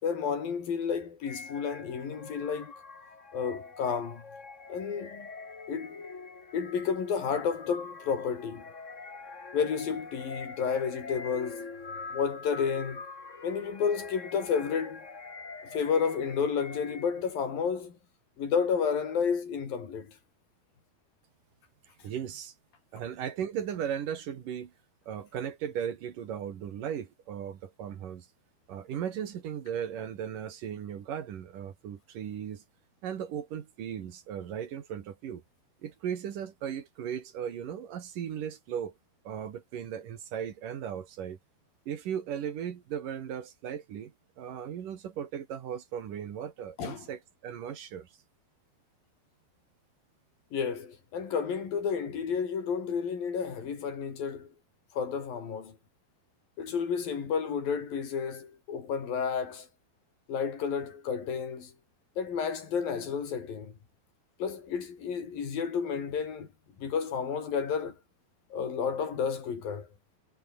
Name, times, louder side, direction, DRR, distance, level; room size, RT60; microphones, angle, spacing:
voice 1, 0.0-2.7 3.3-4.2 4.7-5.3 5.7-6.0 6.5-8.7 9.5-11.7 12.1-13.0 13.4-15.1 15.7-18.0 18.4-20.2 46.8-47.1 50.5-54.5 54.9-55.8 56.6-59.7 60.3-61.7 62.2-63.7 64.4-66.5 66.8-68.0 68.5-69.9, left 6 dB, 65° left, 5.5 m, -31 dB
sound 1, 1.2-17.4, left 4 dB, 25° left, 1.9 m, -44 dB
voice 2, 22.0-22.5 22.9-24.7 25.1-28.3 28.7-32.6 33.0-35.4 35.8-38.9 39.2-41.4 41.9-48.1, right 9 dB, 60° right, 3.4 m, -37 dB
omnidirectional pair, 4.4 m